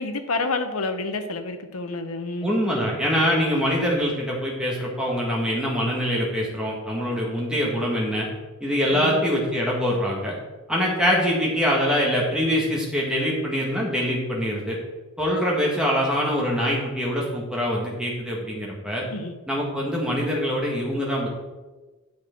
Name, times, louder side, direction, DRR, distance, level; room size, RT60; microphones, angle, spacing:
voice 1, 0.0-2.5 8.9-9.2 19.1-19.3, left 3 dB, 85° left, 8 dB, 0.8 m, -29 dB
voice 2, 2.4-8.3 8.6-10.3 10.7-14.8 15.2-19.0 19.5-21.3, equal, 5° right, -4 dB, 1.6 m, -24 dB
8.7 x 6.1 x 4.4 m, 1.2 s
head